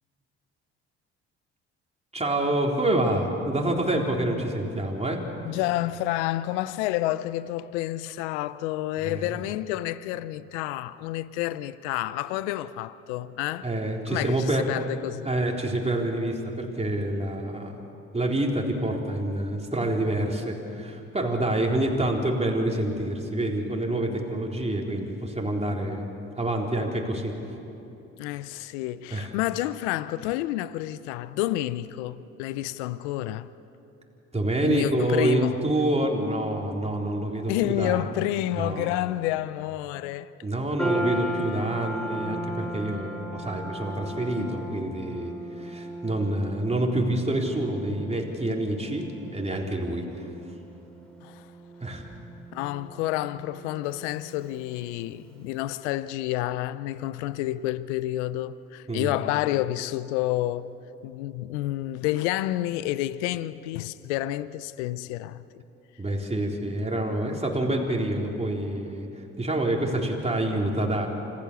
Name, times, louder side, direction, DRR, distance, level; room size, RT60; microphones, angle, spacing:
voice 1, 2.1-5.2 9.0-9.3 13.6-14.6 15.2-17.8 18.1-26.0 26.4-27.6 29.1-29.3 34.3-38.1 38.6-39.0 40.4-45.3 45.6-50.2 51.8-52.0 58.9-59.1 66.0-69.1 69.4-71.1, right 1 dB, 20° right, 3.9 m, -27 dB
voice 2, 5.4-13.7 14.1-15.3 28.2-33.5 34.6-35.6 37.5-40.3 51.2-51.5 52.5-60.7 61.0-65.4, left 15 dB, 90° left, 0.5 m, -29 dB
sound 1, 40.8-55.2, right 1 dB, 5° left, 3.4 m, -37 dB
26.5 x 15.5 x 6.9 m
hypercardioid pair, 50°, 34 cm